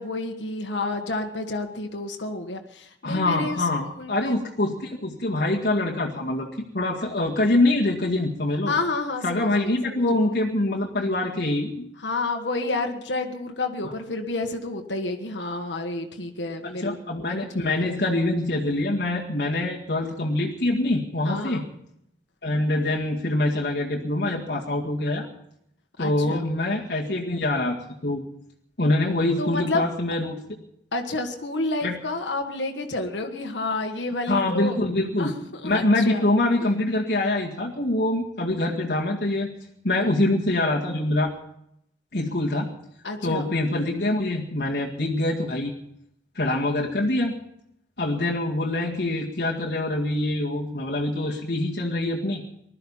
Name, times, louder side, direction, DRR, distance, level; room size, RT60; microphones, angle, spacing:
voice 1, 0.0-4.3 8.7-10.1 12.0-17.0 17.3-17.4 17.6-18.0 21.2-21.6 26.0-26.5 29.4-29.8 30.9-34.8 35.2-36.3 36.6-36.7 43.0-43.5, left 2 dB, 90° left, 3 dB, 1.6 m, -30 dB
voice 2, 3.0-8.7 9.2-11.8 16.6-21.6 22.4-25.3 26.0-27.8 28.0-28.2 28.8-30.4 31.8-32.0 34.3-35.3 35.6-39.5 39.8-41.3 42.1-42.7 43.2-45.7 46.4-47.3 48.0-52.4, left 2 dB, 60° left, -3 dB, 2.0 m, -24 dB
20.0 x 13.0 x 5.6 m, 0.76 s
head